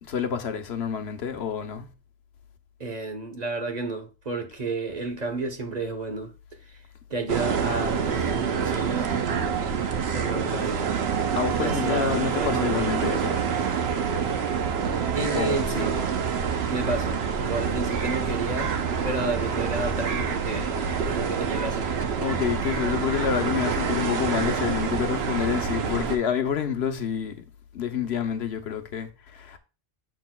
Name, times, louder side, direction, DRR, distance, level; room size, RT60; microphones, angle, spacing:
voice 1, 0.0-1.9 11.4-13.4 15.3-15.9 22.2-27.4 27.7-29.6, left 8 dB, 85° left, 1.0 m, -28 dB
voice 2, 2.8-6.3 7.1-9.7 10.1-11.0 11.6-13.0 15.1-16.0 16.7-18.7 19.0-20.7 21.1-21.9, right 3 dB, 40° right, 1.1 m, -31 dB
sound 1, 7.3-26.2, right 6 dB, 80° right, 1.0 m, -27 dB
6.7 x 6.2 x 2.3 m
omnidirectional pair, 1.1 m